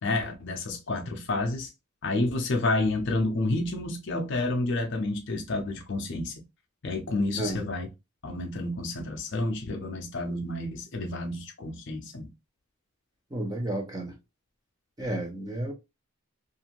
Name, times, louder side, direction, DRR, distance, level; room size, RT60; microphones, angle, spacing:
voice 1, 0.0-1.7 2.0-6.3 6.8-7.9 8.2-12.3, left 2 dB, 55° left, 0.5 m, -29 dB
voice 2, 13.3-14.1 15.0-15.7, right 1 dB, 15° right, 0.6 m, -31 dB
2.6 x 2.4 x 2.8 m
head